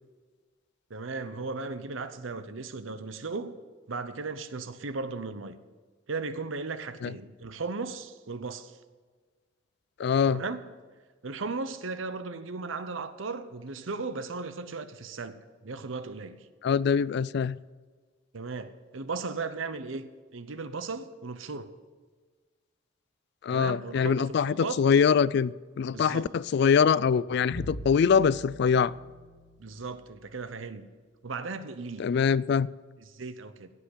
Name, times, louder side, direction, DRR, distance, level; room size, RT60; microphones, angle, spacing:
voice 1, 0.9-3.5 3.9-5.6 6.1-8.8 10.3-10.6 11.2-16.5 18.3-21.7 23.5-24.8 25.9-26.3 29.6-30.9 31.2-32.1 33.1-33.7, right 4 dB, 80° right, 0.8 m, -36 dB
voice 2, 10.0-10.4 16.6-17.6 23.4-28.9 32.0-32.7, left 6 dB, 55° left, 0.3 m, -24 dB
Bowed string instrument, 27.5-30.6, equal, 40° left, 2.6 m, -43 dB
16.5 x 5.7 x 8.1 m
head